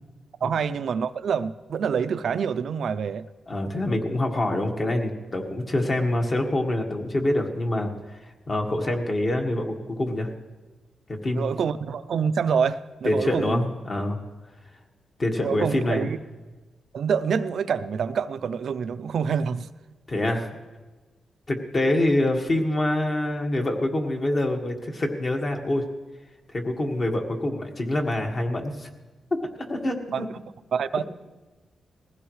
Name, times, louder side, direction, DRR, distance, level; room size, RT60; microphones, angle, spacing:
voice 1, 0.4-3.3 11.3-13.7 15.4-16.2 16.9-19.7 30.1-30.3 30.7-31.0, right 6 dB, 70° right, 12 dB, 0.5 m, -26 dB
voice 2, 3.5-10.3 11.2-11.5 13.0-14.2 15.2-16.1 20.1-20.6 21.5-25.8 26.5-28.9 29.3-30.2, left 1 dB, 35° left, 2 dB, 1.7 m, -26 dB
21.0 x 15.5 x 3.2 m, 1.2 s
wide cardioid pair, 120°, 0 cm